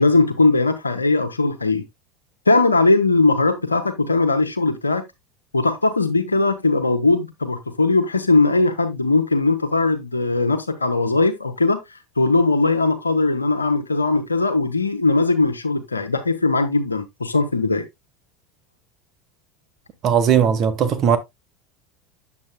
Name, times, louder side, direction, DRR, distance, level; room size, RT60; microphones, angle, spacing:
voice 1, 0.0-1.8 2.5-5.1 5.5-17.8, left 3 dB, 90° left, 0.8 m, -19 dB
voice 2, 20.0-21.2, right 8 dB, 45° right, 1.2 m, -17 dB
8.3 x 7.4 x 2.2 m
figure-of-eight pair, 75°, 0 cm